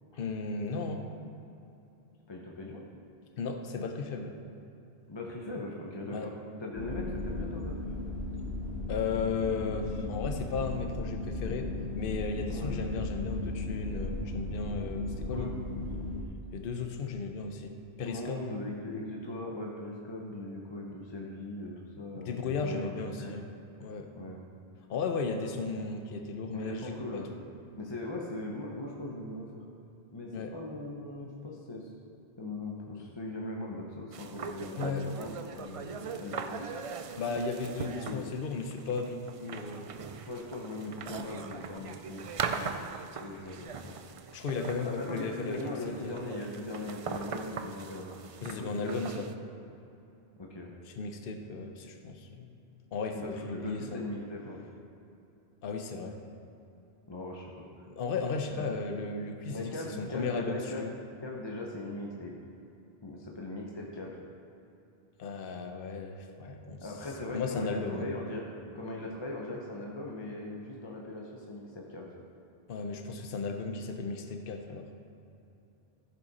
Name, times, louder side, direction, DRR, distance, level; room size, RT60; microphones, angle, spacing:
voice 1, 0.2-1.0 3.4-4.4 6.1-6.3 8.9-11.7 11.9-15.5 16.5-18.4 22.1-23.4 23.8-24.1 24.9-27.4 30.3-30.5 34.8-35.1 37.2-39.9 41.8-41.9 44.3-45.6 46.0-46.2 48.4-49.3 51.0-52.5 52.9-54.0 55.6-56.2 57.9-59.7 60.0-60.9 65.2-66.8 67.3-68.1 72.7-74.9, left 4 dB, 60° left, 5 dB, 0.9 m, -35 dB
voice 2, 2.3-2.8 5.1-6.3 6.6-8.1 12.5-12.8 15.3-15.5 18.0-23.4 24.1-24.4 26.5-27.3 27.8-29.6 30.1-31.9 32.4-36.6 37.8-38.3 40.2-42.9 43.2-43.9 44.8-48.1 48.4-49.2 50.4-50.7 53.1-54.6 57.1-57.9 58.5-58.7 59.5-60.9 61.2-62.3 63.0-64.2 66.8-72.0, left 2 dB, 25° left, -2 dB, 0.9 m, -40 dB
sound 1, 6.8-16.2, left 2 dB, 80° left, 1.2 m, -36 dB
sound 2, 34.1-49.3, right 5 dB, 55° right, 0.3 m, -40 dB
14.5 x 5.7 x 4.2 m, 2.8 s
omnidirectional pair, 1.1 m